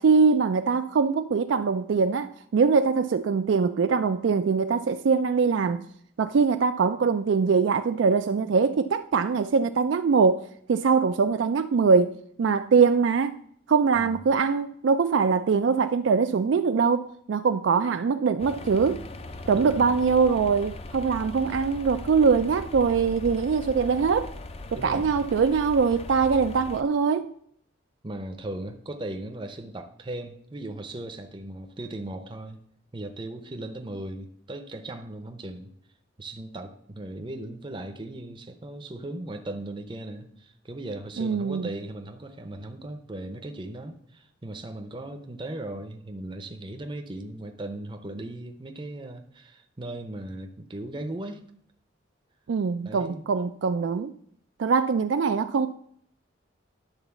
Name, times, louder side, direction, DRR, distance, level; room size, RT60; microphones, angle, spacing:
voice 1, 0.0-5.8 6.2-13.4 13.7-19.0 19.5-24.3 24.8-27.3 41.2-41.7 52.5-54.1 54.6-55.7, right 5 dB, 65° right, 0.4 m, -23 dB
sound 1, 18.4-26.8, left 2 dB, 30° left, 0.5 m, -39 dB
voice 2, 19.5-20.0 24.8-25.3 28.0-32.6 32.9-35.7 36.2-51.4 52.8-53.3, right 1 dB, 25° right, 0.6 m, -38 dB
10.5 x 4.0 x 6.9 m
head